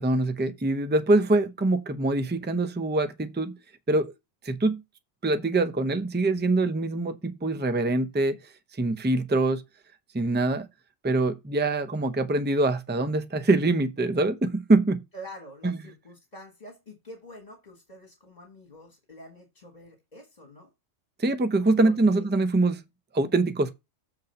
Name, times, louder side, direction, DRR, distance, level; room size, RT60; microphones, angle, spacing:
voice 1, 0.0-3.5 3.9-4.1 4.4-4.8 5.2-8.4 8.8-9.6 10.1-10.7 11.0-15.0 15.6-15.7 21.2-22.8 23.1-23.7, right 2 dB, 10° right, 0.5 m, -24 dB
voice 2, 15.1-20.7 21.8-22.2, equal, 35° left, 1.6 m, -46 dB
7.4 x 3.8 x 6.6 m
omnidirectional pair, 1.3 m